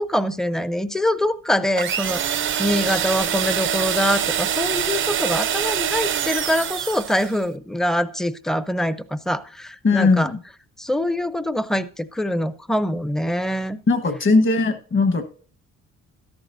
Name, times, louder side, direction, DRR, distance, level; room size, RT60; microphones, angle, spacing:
voice 1, 0.0-10.3 10.8-13.8, left 1 dB, ahead, 15 dB, 0.6 m, -24 dB
sound 1, 1.8-7.4, right 9 dB, 40° right, 0.5 m, -24 dB
voice 2, 9.8-10.4 13.9-15.2, left 3 dB, 40° left, 9 dB, 1.4 m, -18 dB
13.0 x 11.5 x 2.6 m, 0.42 s
cardioid pair, 90°, 30 cm